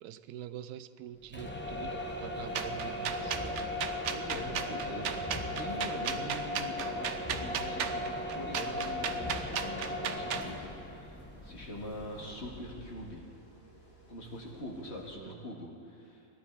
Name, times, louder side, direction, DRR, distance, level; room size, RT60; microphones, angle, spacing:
voice 1, 0.0-3.4 15.1-15.4, right 11 dB, 90° right, 13 dB, 1.1 m, -45 dB
sound 1, 1.2-13.1, left 1 dB, 10° left, 0.9 m, -38 dB
sound 2, 1.7-15.1, equal, 60° left, 3.0 m, -57 dB
sound 3, 2.5-10.5, right 8 dB, 60° right, 0.9 m, -36 dB
voice 2, 4.1-13.3 14.1-16.3, left 1 dB, 45° left, -1 dB, 2.0 m, -44 dB
20.0 x 12.0 x 4.6 m, 2.5 s
omnidirectional pair, 1.6 m